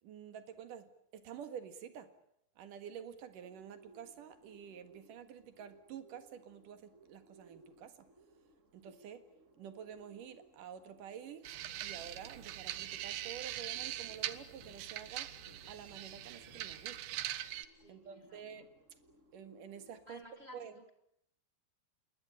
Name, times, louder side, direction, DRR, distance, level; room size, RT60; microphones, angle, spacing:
voice 1, 0.0-2.1 2.6-8.1 8.7-9.2 9.6-11.5 11.8-15.3 15.7-17.2 17.9-18.7 19.3-20.2 20.5-20.8, right 8 dB, 60° right, 3.1 m, -49 dB
Bird, 3.2-20.2, right 2 dB, 25° right, 2.4 m, -63 dB
sound 1, 11.5-17.2, left 2 dB, 65° left, 5.2 m, -63 dB
sound 2, 11.5-17.7, right 13 dB, 90° right, 3.2 m, -42 dB
voice 2, 17.8-18.7 20.1-20.9, left 1 dB, 45° right, 0.8 m, -56 dB
27.5 x 21.5 x 8.8 m
omnidirectional pair, 4.5 m